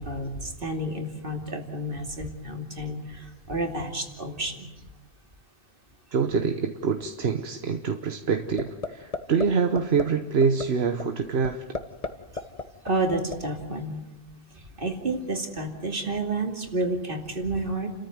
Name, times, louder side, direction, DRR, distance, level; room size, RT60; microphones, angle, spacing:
voice 1, 0.0-4.7 12.8-14.0 14.5-17.9, right 2 dB, 60° right, 4 dB, 2.9 m, -30 dB
voice 2, 6.1-11.6, right 5 dB, 80° right, 7 dB, 1.3 m, -25 dB
sound 1, 8.6-8.9 9.1-9.5 9.8-10.0 10.4-10.6 11.0-11.1 11.4-12.1 12.4-13.4, left 3 dB, 35° left, 1.3 m, -30 dB
29.5 x 14.0 x 9.4 m, 1.0 s
omnidirectional pair, 1.1 m